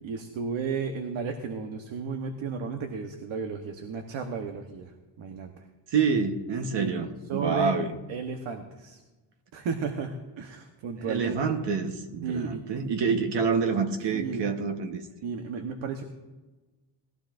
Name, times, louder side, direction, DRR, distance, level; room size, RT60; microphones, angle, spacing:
voice 1, 0.0-5.7 6.7-6.9 7.3-7.7 8.1-9.0 9.5-11.4 12.2-12.6 13.1-13.2 14.1-14.5 15.2-16.0, right 5 dB, 85° right, 5 dB, 1.2 m, -33 dB
voice 2, 5.9-7.9 11.0-15.0, right 5 dB, 65° right, 6 dB, 1.3 m, -27 dB
18.5 x 15.0 x 2.6 m, 1.2 s
cardioid pair, 125°, 45 cm